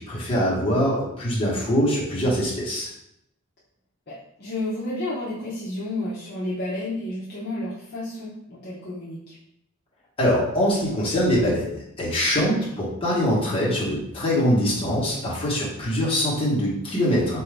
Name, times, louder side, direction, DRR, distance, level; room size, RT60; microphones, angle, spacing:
voice 1, 0.1-2.9 10.2-11.7 12.0-17.4, equal, 25° left, -6 dB, 1.3 m, -23 dB
voice 2, 4.1-9.3, left 1 dB, 50° left, -7 dB, 0.7 m, -31 dB
3.7 x 2.7 x 3.4 m, 0.79 s
head